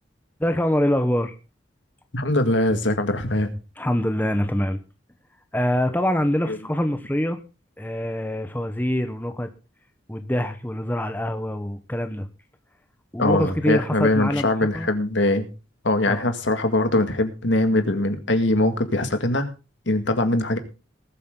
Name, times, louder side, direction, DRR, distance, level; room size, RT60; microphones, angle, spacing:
voice 1, 0.4-1.3 3.8-4.8 5.5-7.4 7.8-9.5 10.1-12.3 13.1-14.5 14.7-14.9 16.1-16.3, left 1 dB, 10° left, 8 dB, 0.9 m, -24 dB
voice 2, 2.1-3.5 6.5-6.6 13.2-15.5 15.8-19.5 19.9-20.6, left 1 dB, 70° left, 8 dB, 2.0 m, -22 dB
20.0 x 8.4 x 3.8 m, 0.31 s
head